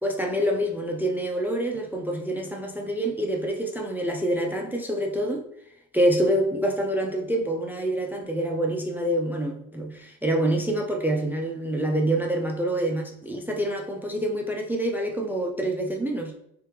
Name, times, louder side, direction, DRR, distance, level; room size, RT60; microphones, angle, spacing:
voice 1, 0.0-5.5 5.9-16.3, right 1 dB, 5° right, 2 dB, 0.5 m, -26 dB
3.4 x 3.4 x 3.0 m, 0.75 s
supercardioid pair, 80°, 40 cm